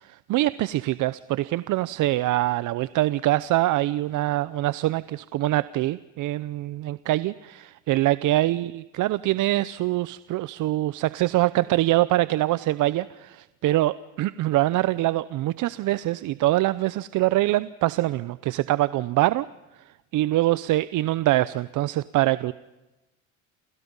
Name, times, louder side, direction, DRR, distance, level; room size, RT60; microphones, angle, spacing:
voice 1, 0.1-19.5 20.1-22.5, right 16 dB, 60° right, 16 dB, 0.8 m, -24 dB
29.5 x 28.5 x 5.5 m, 1.1 s
supercardioid pair, 90°, 34 cm